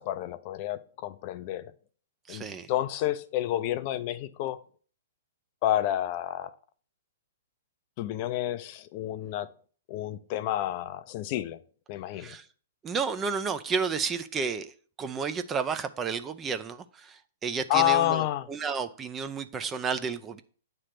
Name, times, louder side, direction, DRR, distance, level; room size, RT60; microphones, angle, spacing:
voice 1, 0.0-1.7 2.3-4.6 5.6-6.5 8.0-9.5 9.9-11.6 11.9-12.4 17.7-18.5, left 13 dB, 40° left, 0.5 m, -29 dB
voice 2, 2.3-2.7 12.2-12.4 12.8-14.7 15.0-20.4, right 5 dB, 15° right, 0.4 m, -31 dB
8.8 x 3.3 x 5.9 m
hypercardioid pair, 145°, 0 cm